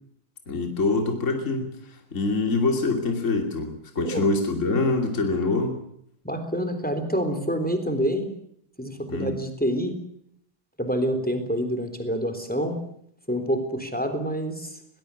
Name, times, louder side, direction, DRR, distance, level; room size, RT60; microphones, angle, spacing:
voice 1, 0.5-5.8 9.1-9.4, left 3 dB, 35° left, 3 dB, 3.1 m, -25 dB
voice 2, 6.2-8.3 8.8-10.0 10.8-12.8 13.3-14.8, equal, 5° left, 8 dB, 3.6 m, -27 dB
21.5 x 20.5 x 8.5 m, 0.71 s
omnidirectional pair, 2.3 m